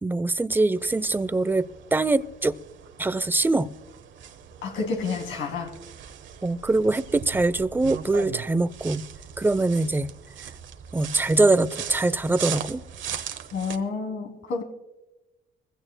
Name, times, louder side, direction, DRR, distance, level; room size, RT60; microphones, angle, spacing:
voice 1, 0.0-1.7 1.9-2.6 3.0-3.7 6.4-9.0 9.4-10.1 10.9-12.8, right 2 dB, 10° right, 16 dB, 0.5 m, -23 dB
sound 1, 0.8-13.8, right 8 dB, 70° right, 1.1 m, -40 dB
voice 2, 4.6-5.7 13.5-14.6, left 4 dB, 80° left, 3 dB, 2.7 m, -29 dB
22.5 x 16.0 x 2.2 m, 1.0 s
cardioid pair, 90°, 20 cm